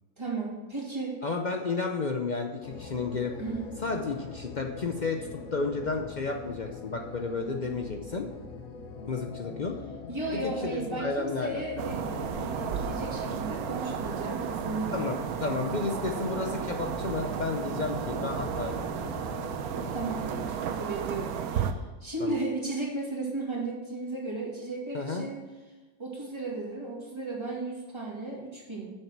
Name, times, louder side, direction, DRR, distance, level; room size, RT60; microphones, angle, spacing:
voice 1, 0.2-1.2 3.4-3.7 10.1-15.1 19.9-25.4 26.0-28.9, right 2 dB, 20° right, -3 dB, 2.2 m, -35 dB
voice 2, 1.2-3.3 3.8-8.3 9.1-9.8 10.3-11.6 14.9-18.8 22.2-22.4 24.9-25.2, left 3 dB, 55° left, 4 dB, 0.5 m, -32 dB
sound 1, 2.6-20.6, left 5 dB, 75° left, 1.3 m, -43 dB
sound 2, 11.8-21.7, right 7 dB, 80° right, 1.1 m, -33 dB
7.3 x 6.4 x 5.9 m, 1.2 s
omnidirectional pair, 1.6 m